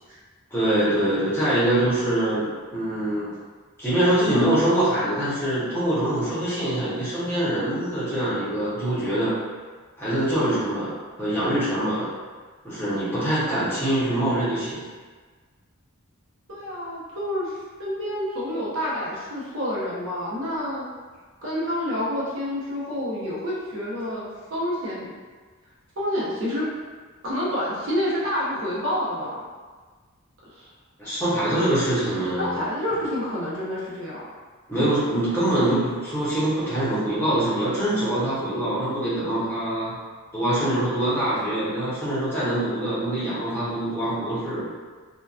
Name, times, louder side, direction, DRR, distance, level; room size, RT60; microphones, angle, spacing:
voice 1, 0.5-3.3 3.8-9.3 10.0-10.9 11.2-12.1 12.6-14.8 31.0-32.7 34.7-40.0 40.3-44.7, right 1 dB, 10° left, -11 dB, 0.8 m, -24 dB
voice 2, 16.5-20.9 21.4-25.1 26.0-26.7 27.2-29.4 30.5-30.7 32.4-34.2, left 1 dB, 60° right, -7 dB, 0.7 m, -28 dB
2.7 x 2.2 x 2.3 m, 1.4 s
head